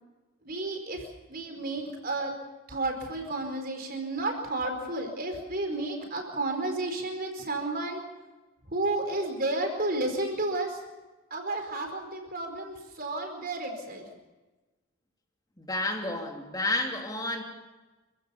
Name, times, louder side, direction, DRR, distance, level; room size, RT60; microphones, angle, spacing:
voice 1, 0.4-1.0 1.3-2.3 2.7-8.0 8.7-10.8 11.3-14.0, right 2 dB, 45° right, 5 dB, 4.6 m, -32 dB
voice 2, 15.6-17.4, left 2 dB, 15° left, 2 dB, 2.8 m, -30 dB
28.0 x 16.0 x 7.0 m, 1.2 s
head